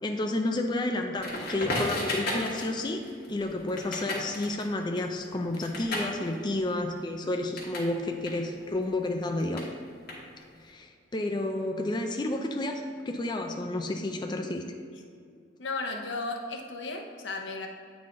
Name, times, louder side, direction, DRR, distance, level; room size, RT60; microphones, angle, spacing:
voice 1, 0.0-3.0 3.3-9.7 10.6-14.6, left 2 dB, 25° left, 3 dB, 0.4 m, -31 dB
Crackle, 1.2-7.9 8.2-10.6, left 1 dB, 60° left, 1.7 m, -35 dB
voice 2, 15.6-17.7, left 3 dB, 90° left, 3 dB, 0.8 m, -34 dB
9.0 x 4.0 x 3.7 m, 2.2 s
head